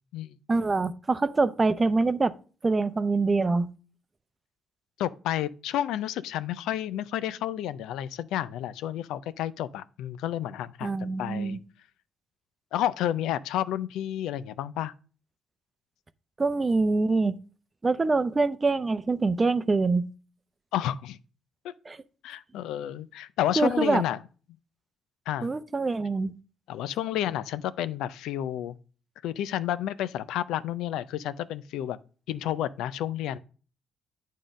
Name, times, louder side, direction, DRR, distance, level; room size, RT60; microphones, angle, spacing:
voice 1, 0.5-2.3 2.6-3.7 10.8-11.6 16.4-17.4 17.8-20.0 21.9-22.0 23.6-24.0 25.4-26.3, right 3 dB, 25° right, 0.5 m, -25 dB
voice 2, 5.0-11.6 12.7-14.9 20.7-21.2 21.6-21.7 22.2-24.2 25.3-25.5 26.7-28.8 29.2-32.0 32.3-33.4, left 12 dB, 90° left, 0.4 m, -31 dB
9.0 x 3.7 x 5.1 m
cardioid pair, 90°, 0 cm